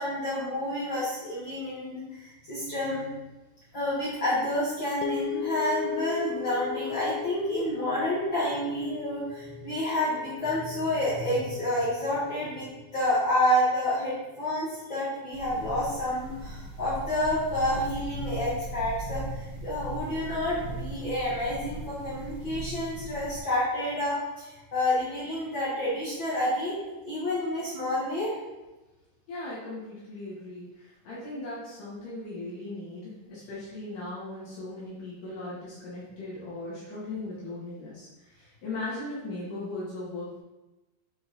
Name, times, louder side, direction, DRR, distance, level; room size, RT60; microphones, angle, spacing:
voice 1, 0.0-3.3 3.7-12.7 12.9-28.3, left 1 dB, 40° left, -10 dB, 2.2 m, -29 dB
sound 1, 5.0-13.3, left 14 dB, 90° left, 1.7 m, -38 dB
sound 2, 15.3-23.4, right 1 dB, 65° right, 1.6 m, -38 dB
voice 2, 29.3-40.4, left 2 dB, 65° left, -9 dB, 3.3 m, -38 dB
8.3 x 4.8 x 4.3 m, 1.1 s
omnidirectional pair, 4.2 m